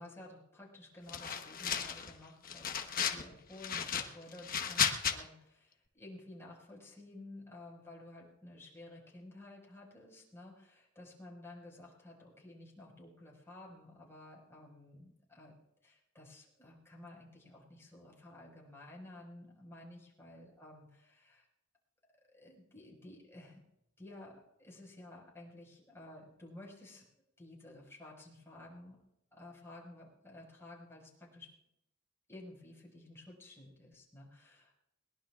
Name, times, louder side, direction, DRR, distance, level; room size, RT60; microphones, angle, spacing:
voice 1, 0.0-15.6 15.8-21.5 22.3-23.6 24.0-27.1 27.4-29.0 29.3-31.5 32.3-34.7, left 1 dB, 15° left, -3 dB, 5.5 m, -53 dB
sound 1, 1.1-2.1 2.5-3.2 3.6-5.2, left 7 dB, 45° left, 1.2 m, -34 dB
22.0 x 19.5 x 2.5 m, 0.82 s
head